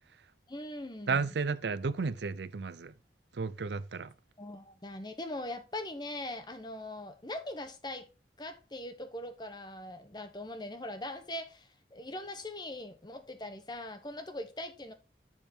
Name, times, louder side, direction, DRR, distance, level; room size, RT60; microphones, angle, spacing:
voice 1, 0.5-1.4 4.4-8.1 8.4-14.9, left 1 dB, 25° left, 1.0 m, -41 dB
voice 2, 1.1-2.9 3.4-4.1, right 4 dB, 80° right, 0.5 m, -33 dB
7.3 x 7.1 x 3.7 m
head